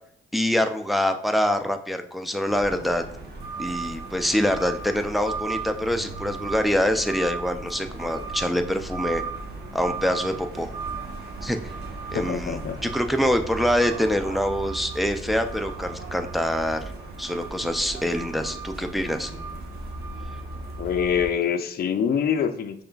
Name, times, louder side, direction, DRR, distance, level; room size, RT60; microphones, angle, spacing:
voice 1, 0.3-3.0 3.6-9.2 9.7-10.7 11.4-11.6 12.1-16.8 17.2-19.3, equal, ahead, 6 dB, 0.4 m, -25 dB
sound 1, 2.5-21.3, right 3 dB, 55° right, 1.1 m, -36 dB
voice 2, 12.1-12.8 20.8-22.8, left 7 dB, 50° left, 8 dB, 0.5 m, -25 dB
5.3 x 3.4 x 2.3 m, 0.71 s
cardioid pair, 90°, 20 cm